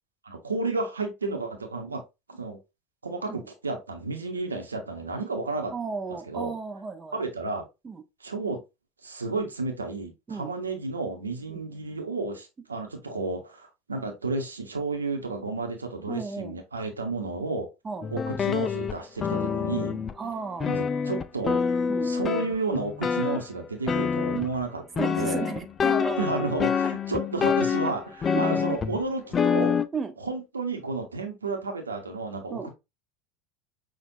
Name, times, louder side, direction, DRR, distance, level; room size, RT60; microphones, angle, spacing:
voice 1, 0.2-2.0 2.3-2.6 3.0-5.7 6.1-6.5 7.1-7.7 8.2-8.6 9.0-17.7 18.1-20.0 20.7-21.6 22.0-25.5 26.2-29.8 30.2-32.7, right 3 dB, 85° right, 1.0 m, -32 dB
voice 2, 5.7-7.2 7.8-8.0 10.3-10.5 11.5-11.6 16.1-16.5 17.8-18.0 20.2-20.7 21.9-22.1 25.0-26.2 28.3-28.5 29.9-30.1 32.5-32.7, right 5 dB, 20° right, 0.8 m, -34 dB
sound 1, 18.0-20.3 20.6-23.5 23.9-24.6 25.0-29.0 29.3-29.9, left 6 dB, 30° left, 0.4 m, -26 dB
6.0 x 2.5 x 2.6 m
figure-of-eight pair, 80°, 0 cm